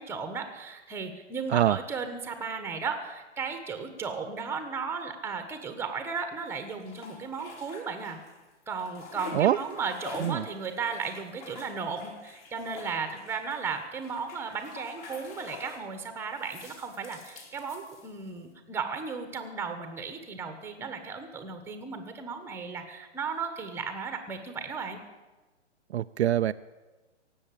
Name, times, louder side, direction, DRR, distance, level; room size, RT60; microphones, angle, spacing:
voice 1, 0.0-8.2 8.7-25.0, right 5 dB, 5° right, 7 dB, 1.2 m, -35 dB
sound 1, 6.4-8.4 8.7-15.9 16.3-18.4, left 4 dB, 30° left, 2.9 m, -46 dB
voice 2, 25.9-26.5, right 11 dB, 65° right, 12 dB, 0.5 m, -24 dB
17.5 x 8.0 x 8.7 m, 1.2 s
hypercardioid pair, 140°, 36 cm